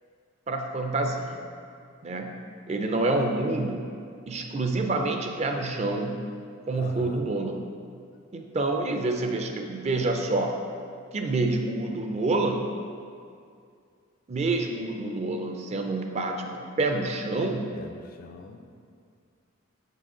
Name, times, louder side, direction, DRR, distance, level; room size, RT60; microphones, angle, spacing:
voice 1, 0.5-1.5 2.0-2.3 2.7-3.8 4.3-6.2 6.7-7.6 8.3-10.5 11.1-12.7 14.3-17.7, right 2 dB, 30° right, 4 dB, 0.4 m, -27 dB
voice 2, 6.8-7.3 17.7-18.6, left 3 dB, 40° left, 4 dB, 0.3 m, -42 dB
6.6 x 4.5 x 3.8 m, 2.3 s
head